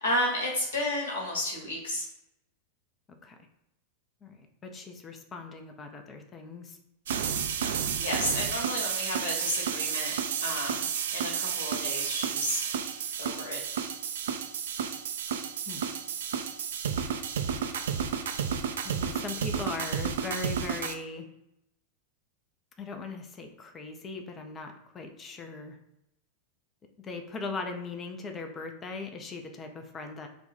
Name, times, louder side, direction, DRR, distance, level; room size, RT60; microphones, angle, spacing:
voice 1, 0.0-2.0 7.6-10.9 11.1-12.6 13.2-13.6, left 1 dB, 65° left, -1 dB, 1.2 m, -32 dB
voice 2, 4.2-6.8 15.7-15.9 18.8-21.3 22.8-25.8 27.0-30.3, left 3 dB, 25° left, 5 dB, 0.5 m, -39 dB
sound 1, 7.1-20.9, right 7 dB, 60° right, 0.4 m, -31 dB
3.5 x 2.2 x 3.8 m, 0.83 s
figure-of-eight pair, 90°, 0 cm